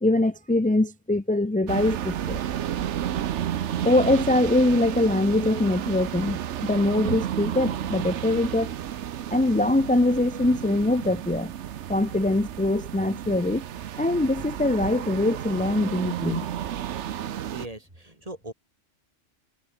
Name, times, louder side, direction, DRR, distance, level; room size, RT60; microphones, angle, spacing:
voice 1, 0.0-2.4 3.8-8.7 9.3-11.5 11.9-13.6 14.0-16.4, left 2 dB, 15° left, 0.3 m, -23 dB
sound 1, 1.7-17.7, right 10 dB, 70° right, 1.1 m, -32 dB
voice 2, 17.5-18.5, right 1 dB, 30° right, 4.2 m, -39 dB
omnidirectional pair, 1.3 m